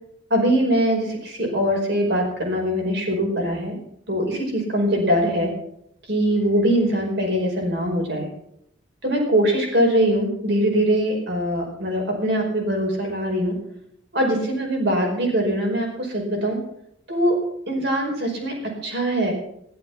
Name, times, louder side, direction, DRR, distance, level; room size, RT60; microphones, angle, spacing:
voice 1, 0.3-3.8 4.1-5.5 6.1-8.3 9.0-13.6 14.1-16.6 17.1-17.4 17.7-18.6 18.8-19.3, equal, 55° right, 1 dB, 5.2 m, -22 dB
14.5 x 12.5 x 6.0 m, 0.74 s
head